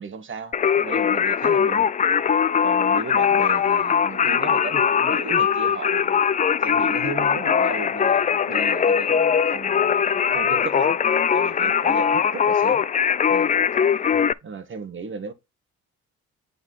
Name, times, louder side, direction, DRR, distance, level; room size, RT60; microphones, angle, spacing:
voice 1, 0.0-1.9 2.6-6.2 6.6-9.8 10.3-11.0 11.3-12.8 13.3-13.5 14.4-15.3, right 5 dB, 40° right, 1.4 m, -35 dB
Singing, 0.5-14.3, left 7 dB, 25° left, 0.4 m, -21 dB
9.6 x 4.0 x 4.0 m
cardioid pair, 90°, 30 cm